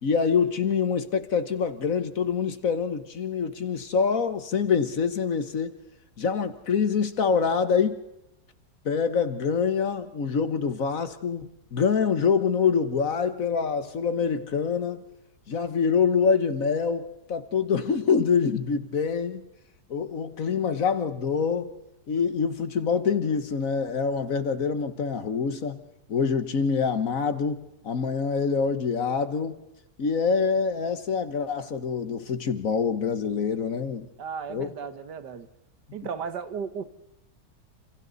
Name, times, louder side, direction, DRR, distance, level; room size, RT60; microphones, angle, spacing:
voice 1, 0.0-5.7 6.2-8.0 8.8-15.0 15.5-19.4 19.9-21.7 22.1-25.8 26.1-29.6 30.0-34.1 34.5-34.7, left 6 dB, 50° left, 1.5 m, -25 dB
voice 2, 34.2-35.5 35.9-36.8, right 6 dB, 70° right, 1.8 m, -35 dB
28.5 x 27.5 x 4.0 m
omnidirectional pair, 1.9 m